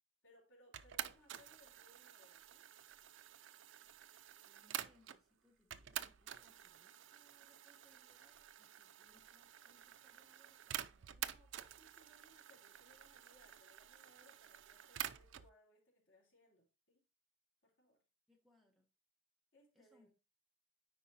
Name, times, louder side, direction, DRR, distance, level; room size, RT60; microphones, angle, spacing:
voice 1, 0.2-2.7 11.1-17.0 17.6-18.0 19.5-20.1, equal, 70° left, 3.0 m, -69 dB
sound 1, 0.7-5.2 5.7-15.5, right 11 dB, 70° right, 0.4 m, -49 dB
voice 2, 4.1-11.1 18.3-18.9 19.7-20.1, left 1 dB, ahead, 1.1 m, -73 dB
9.7 x 4.5 x 2.8 m
head